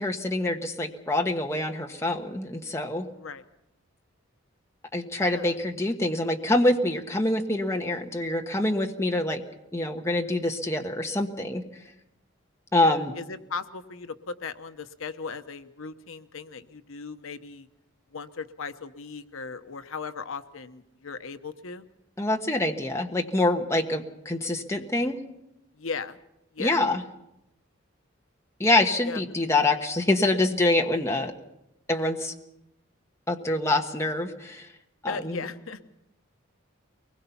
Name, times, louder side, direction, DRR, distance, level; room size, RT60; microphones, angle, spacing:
voice 1, 0.0-3.1 4.9-9.4 9.7-11.6 12.7-13.1 22.2-25.2 26.6-27.0 28.6-31.3 31.9-32.3 33.3-34.7 35.0-35.4, left 2 dB, 15° left, 3 dB, 1.3 m, -25 dB
voice 2, 3.1-3.4 5.1-5.5 12.8-17.7 18.1-21.8 25.7-26.2 26.5-26.8 29.0-29.2 35.1-35.8, left 4 dB, 75° left, 10 dB, 0.9 m, -37 dB
23.0 x 20.5 x 5.8 m, 0.86 s
head